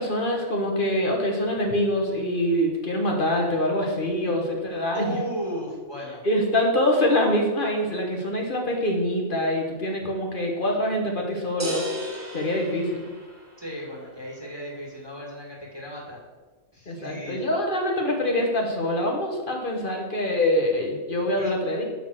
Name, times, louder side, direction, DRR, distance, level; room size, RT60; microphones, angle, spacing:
voice 1, 0.0-5.1 6.2-11.8 12.3-13.0 16.9-21.8, left 1 dB, 45° left, 1 dB, 1.6 m, -24 dB
voice 2, 4.9-6.2 13.6-16.2 16.7-17.4 21.4-21.5, equal, 20° right, -3 dB, 2.1 m, -35 dB
sound 1, 11.6-13.6, left 1 dB, 70° right, 3.1 m, -34 dB
11.0 x 4.0 x 6.4 m, 1.3 s
omnidirectional pair, 1.2 m